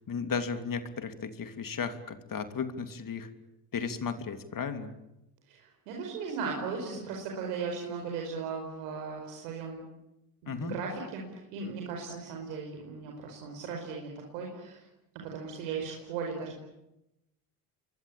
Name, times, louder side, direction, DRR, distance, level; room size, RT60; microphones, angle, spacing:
voice 1, 0.0-3.3 3.7-4.9 10.5-10.8, left 5 dB, 40° left, 8 dB, 3.1 m, -35 dB
voice 2, 5.5-9.8 10.4-14.9 15.2-16.6, right 5 dB, 85° right, 1 dB, 5.2 m, -37 dB
28.5 x 23.0 x 8.8 m, 0.90 s
supercardioid pair, 75°, 48 cm